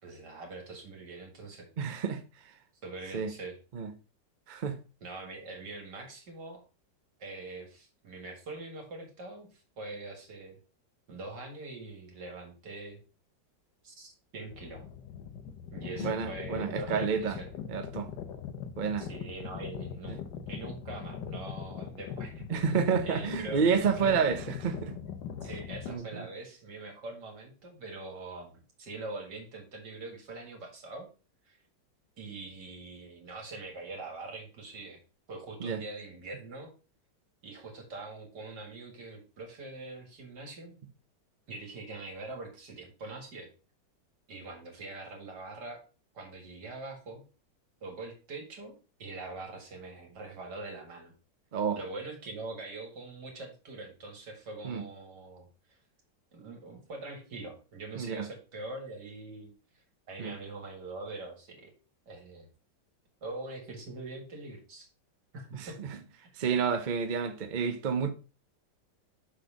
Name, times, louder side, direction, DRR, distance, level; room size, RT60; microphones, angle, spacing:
voice 1, 0.0-1.7 2.8-3.6 5.0-6.6 7.2-10.6 11.1-13.0 13.8-14.8 15.7-17.5 19.0-20.2 20.5-22.6 23.0-24.4 25.4-31.1 31.5-31.6 32.2-35.0 35.3-36.7 37.4-40.7 41.5-43.5 44.3-45.8 46.1-47.2 47.8-48.7 49.0-51.1 51.8-55.5 56.3-59.5 60.1-61.7 62.1-62.5 63.2-64.9 65.3-65.8 66.2-66.3, right 3 dB, 70° right, 2.6 m, -43 dB
voice 2, 1.8-2.2 3.1-3.3 3.7-3.9 4.5-4.8 16.0-17.4 17.7-18.1 18.8-19.1 20.1-20.2 22.5-24.9 25.9-26.2 35.6-35.8 51.5-51.8 54.6-54.8 58.0-58.3 60.2-60.3 65.5-66.0 66.4-68.1, right 6 dB, 50° right, 0.5 m, -29 dB
sound 1, 14.5-26.0, left 7 dB, 75° left, 1.4 m, -41 dB
6.5 x 4.0 x 5.0 m
omnidirectional pair, 1.9 m